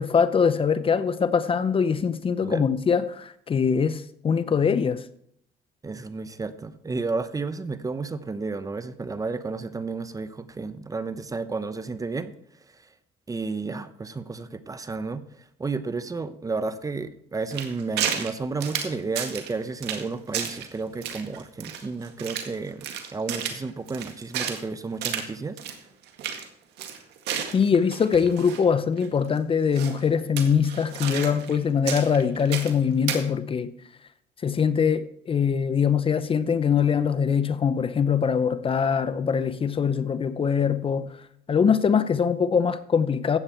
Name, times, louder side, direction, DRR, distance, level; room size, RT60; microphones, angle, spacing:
voice 1, 0.0-5.0 27.5-33.7 34.4-41.2 41.5-43.4, left 6 dB, 35° left, 0.7 m, -23 dB
voice 2, 5.8-12.3 13.3-25.6, right 4 dB, 20° right, 0.8 m, -32 dB
sound 1, 17.5-18.3 18.6-19.5 19.8-20.1 20.3-20.7 21.0-22.5 22.8-24.6 25.0-25.3 25.6-25.8 26.0-26.4 26.8-28.6 29.0-29.1 29.8-30.0 30.4-31.6 31.9-32.8 33.1-33.2, right 8 dB, 80° right, 1.9 m, -32 dB
14.5 x 8.7 x 4.4 m
cardioid pair, 110°, 17 cm